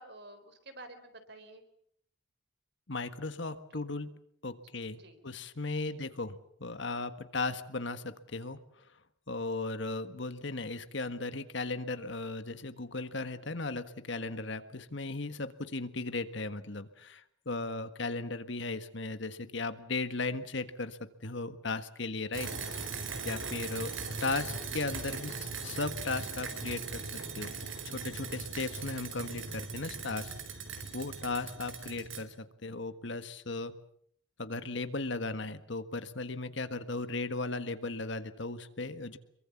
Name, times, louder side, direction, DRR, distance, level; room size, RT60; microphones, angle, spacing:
voice 1, 0.0-1.6 3.7-3.9 4.9-5.2 5.9-6.0 25.1-25.3, right 2 dB, 55° right, 9 dB, 3.9 m, -51 dB
voice 2, 2.9-4.1 4.4-8.6 9.3-22.5 23.2-23.9 24.2-25.3 25.6-27.5 27.9-30.3 30.9-33.7 34.4-39.2, left 3 dB, 60° left, 11 dB, 1.5 m, -36 dB
sound 1, 22.3-32.2, right 4 dB, 70° right, 4.0 m, -39 dB
26.5 x 23.0 x 7.2 m, 0.67 s
head